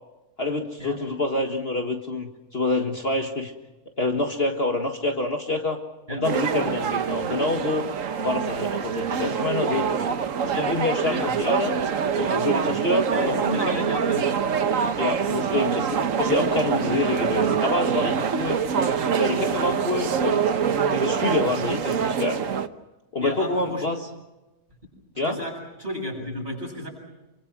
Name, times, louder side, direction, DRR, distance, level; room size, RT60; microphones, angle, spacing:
voice 1, 0.4-3.5 4.0-5.8 6.1-7.8 8.2-11.8 12.2-13.8 15.0-18.6 19.2-20.5 20.9-22.4 23.1-24.0 25.2-25.4, left 2 dB, 40° left, 3 dB, 2.0 m, -27 dB
sound 1, 6.2-22.7, right 7 dB, 60° right, 1.4 m, -25 dB
voice 2, 11.0-11.3 13.1-14.3 23.2-23.8 25.2-26.9, equal, 30° right, 0 dB, 8.1 m, -32 dB
28.0 x 24.5 x 6.1 m, 1.0 s
omnidirectional pair, 1.6 m